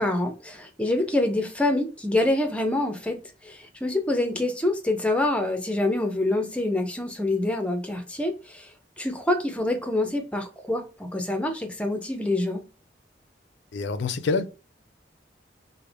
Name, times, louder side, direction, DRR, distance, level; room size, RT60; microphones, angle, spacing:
voice 1, 0.0-8.7 9.0-12.6, left 1 dB, 5° left, 0.6 m, -26 dB
voice 2, 13.7-14.5, left 4 dB, 80° left, 0.4 m, -26 dB
3.3 x 2.1 x 3.4 m
head